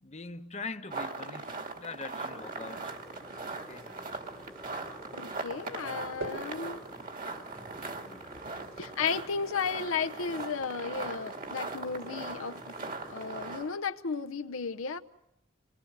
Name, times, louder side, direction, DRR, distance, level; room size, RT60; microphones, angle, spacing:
voice 1, 0.0-2.9 3.5-3.9 8.0-8.4, left 3 dB, 35° left, 1.0 m, -43 dB
sound 1, 0.9-13.8, right 3 dB, 40° right, 2.2 m, -40 dB
sound 2, 2.3-13.7, left 1 dB, ahead, 1.3 m, -50 dB
sound 3, 3.1-4.7 5.5-9.4, right 2 dB, 70° right, 6.1 m, -48 dB
voice 2, 5.1-6.8 8.8-15.0, left 5 dB, 75° left, 0.9 m, -34 dB
26.0 x 20.5 x 8.1 m
head